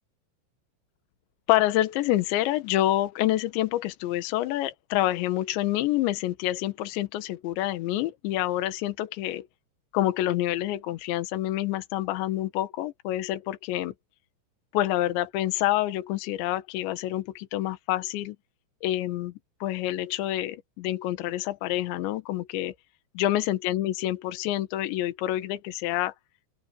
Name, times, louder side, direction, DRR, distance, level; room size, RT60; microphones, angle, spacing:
voice 1, 1.5-9.5 9.9-13.9 14.7-18.4 18.8-19.3 19.6-22.7 23.1-26.1, left 14 dB, 70° left, 3.4 m, -27 dB
open air
omnidirectional pair, 6.0 m